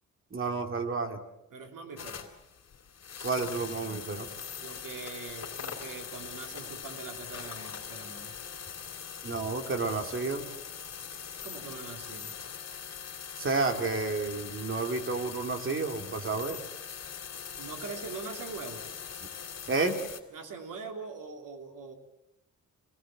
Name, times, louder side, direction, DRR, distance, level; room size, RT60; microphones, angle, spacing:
voice 1, 0.3-1.2 3.2-4.3 9.2-10.5 13.4-16.6 19.2-19.3 19.7-20.0, right 3 dB, 40° right, 5 dB, 2.5 m, -31 dB
voice 2, 1.5-2.2 4.6-8.4 11.4-12.3 17.6-18.8 20.3-21.9, right 4 dB, 85° right, 3 dB, 3.2 m, -42 dB
sound 1, 2.0-20.2, left 7 dB, 50° left, 3.2 m, -42 dB
25.5 x 18.5 x 7.5 m, 0.89 s
wide cardioid pair, 130°, 32 cm